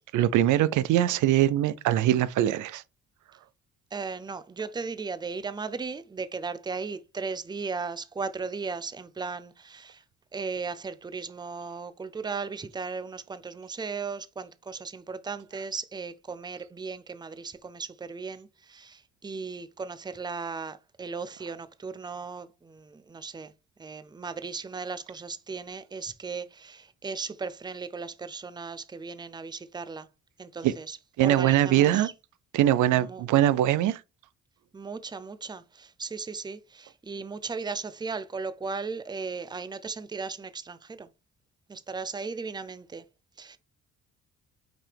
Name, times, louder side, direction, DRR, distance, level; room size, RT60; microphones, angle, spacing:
voice 1, 0.1-2.8 30.6-30.7 31.2-32.1 32.5-34.0, right 12 dB, 80° right, 0.5 m, -22 dB
voice 2, 3.9-10.0 10.3-23.5 23.8-30.1 30.4-31.0 31.2-32.1 32.9-33.2 34.7-41.1 41.7-43.0 43.4-43.6, right 4 dB, 15° right, 0.5 m, -36 dB
6.1 x 4.8 x 3.3 m
cardioid pair, 90°, 30 cm